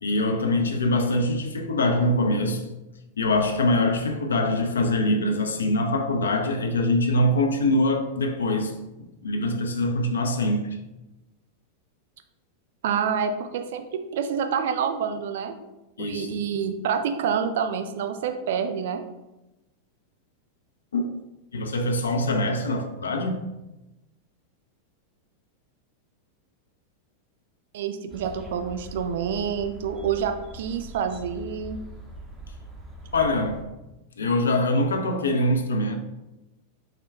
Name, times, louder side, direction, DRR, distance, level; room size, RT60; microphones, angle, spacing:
voice 1, 0.0-2.7 3.2-8.8 9.2-10.7 16.0-16.4 20.9-21.1 21.5-23.4 33.1-33.7 34.2-35.9, left 1 dB, 70° left, 0.5 m, -23 dB
voice 2, 12.8-15.5 16.0-19.0 27.7-31.8, right 7 dB, 55° right, 0.4 m, -27 dB
sound 1, 28.1-33.6, equal, 25° right, 0.8 m, -42 dB
5.6 x 2.2 x 3.3 m
figure-of-eight pair, 90°, 0 cm